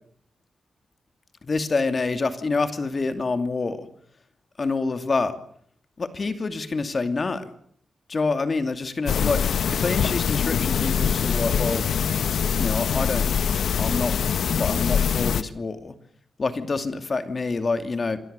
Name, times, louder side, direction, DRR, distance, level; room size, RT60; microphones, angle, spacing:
voice 1, 1.4-3.9 4.6-5.4 6.0-7.5 8.1-9.4 9.7-11.9 12.6-13.3 13.8-14.2 14.5-16.0 16.4-18.2, left 3 dB, 40° left, 9 dB, 2.6 m, -26 dB
sound 1, 9.1-15.4, left 7 dB, 85° left, 1.1 m, -23 dB
sound 2, 11.5-13.5, right 4 dB, 70° right, 7.6 m, -49 dB
27.5 x 22.5 x 6.9 m, 0.62 s
wide cardioid pair, 105°, 0 cm